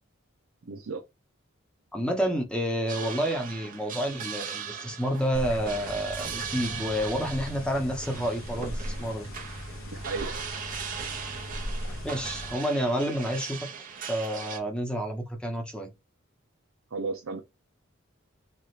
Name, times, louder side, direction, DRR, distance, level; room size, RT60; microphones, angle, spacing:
voice 1, 0.7-1.0 9.9-10.4 16.9-17.4, right 4 dB, 85° right, 0.6 m, -34 dB
voice 2, 1.9-9.3 12.0-13.7 14.1-15.9, equal, 5° left, 0.9 m, -29 dB
sound 1, 2.9-14.6, right 7 dB, 40° right, 0.9 m, -39 dB
sound 2, 5.3-12.5, equal, 80° left, 0.8 m, -38 dB
4.2 x 2.4 x 3.2 m
head